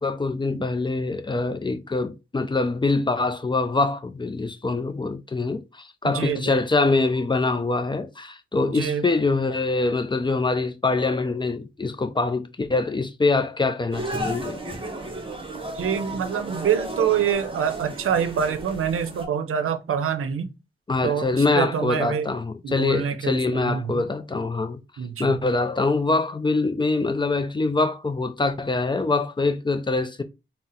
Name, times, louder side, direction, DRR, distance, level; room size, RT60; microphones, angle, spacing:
voice 1, 0.0-14.6 20.9-24.8 25.2-30.2, left 3 dB, 20° left, 0.4 m, -24 dB
voice 2, 6.0-6.6 8.7-9.1 15.7-20.5 21.0-22.3 22.6-24.0 25.0-25.4, right 8 dB, 85° right, 0.5 m, -26 dB
sound 1, 13.9-19.2, right 1 dB, 25° right, 0.8 m, -33 dB
3.7 x 2.0 x 4.1 m
wide cardioid pair, 155°, 21 cm